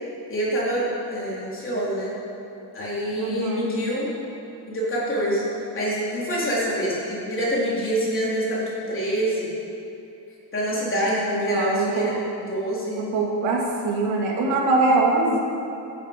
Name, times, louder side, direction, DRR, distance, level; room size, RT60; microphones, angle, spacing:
voice 1, 0.3-2.2 2.7-4.1 4.7-5.4 5.7-9.5 10.5-13.0, equal, 25° left, -7 dB, 3.8 m, -26 dB
voice 2, 3.2-3.7 11.5-12.1 13.0-15.4, right 3 dB, 85° right, -2 dB, 2.4 m, -23 dB
15.5 x 9.7 x 5.3 m, 2.8 s
cardioid pair, 160°, 45 cm